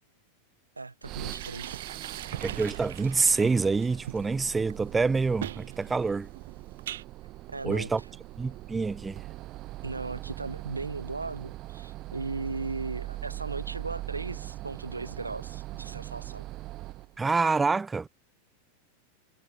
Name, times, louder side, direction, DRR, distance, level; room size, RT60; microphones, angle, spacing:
voice 1, 0.8-1.8 7.5-7.9 9.8-16.4, right 3 dB, 80° right, 5.2 m, -37 dB
sound 1, 1.0-17.2, right 17 dB, 35° right, 2.0 m, -41 dB
sound 2, 1.1-7.0, right 12 dB, 60° right, 4.6 m, -41 dB
voice 2, 2.3-6.3 7.6-8.0 8.4-9.2 17.2-18.1, right 4 dB, 10° right, 1.3 m, -26 dB
figure-of-eight pair, 90°, 0 cm